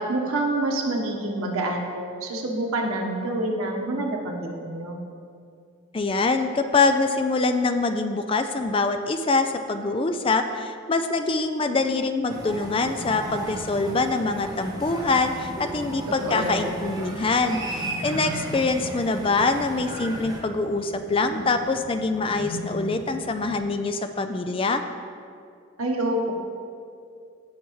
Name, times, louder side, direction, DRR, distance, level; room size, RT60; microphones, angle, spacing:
voice 1, 0.0-5.0 16.2-16.7 25.8-26.3, right 2 dB, 90° right, 0 dB, 1.3 m, -27 dB
voice 2, 5.9-24.8, left 3 dB, 25° left, 8 dB, 0.4 m, -24 dB
sound 1, 12.3-20.4, right 1 dB, 20° right, 0.9 m, -36 dB
sound 2, 12.9-23.6, left 1 dB, 80° left, 1.7 m, -39 dB
16.0 x 5.9 x 3.2 m, 2.4 s
head